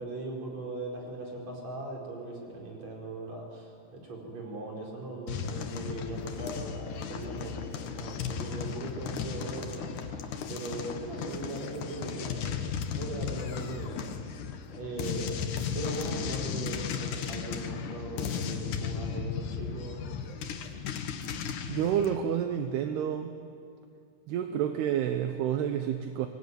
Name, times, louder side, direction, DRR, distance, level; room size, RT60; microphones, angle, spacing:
voice 1, 0.0-12.6 12.9-14.0 14.7-20.2, right 2 dB, 35° right, -1 dB, 5.6 m, -39 dB
sound 1, 5.3-22.2, left 7 dB, 65° left, 2.0 m, -35 dB
voice 2, 21.7-23.3 24.3-26.3, right 9 dB, 70° right, 7 dB, 2.7 m, -29 dB
24.0 x 21.5 x 9.7 m, 2.4 s
omnidirectional pair, 5.4 m